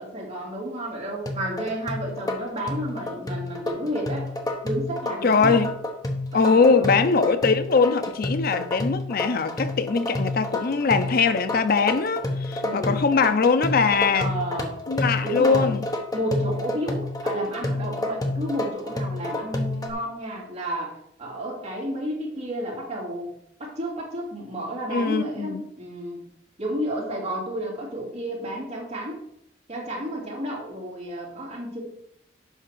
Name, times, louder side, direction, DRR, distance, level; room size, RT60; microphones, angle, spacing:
voice 1, 0.0-4.3 4.6-5.6 6.3-7.0 12.6-13.1 14.1-14.8 15.2-15.7 16.1-23.3 23.6-26.2 26.6-29.2 29.7-31.8, right 1 dB, 35° right, 2.7 m, -31 dB
sound 1, 1.3-19.9, left 2 dB, 20° left, 1.0 m, -29 dB
voice 2, 5.2-5.7 6.3-14.3 14.9-15.8 24.9-25.6, left 5 dB, 55° left, 0.5 m, -21 dB
6.3 x 5.5 x 6.6 m
head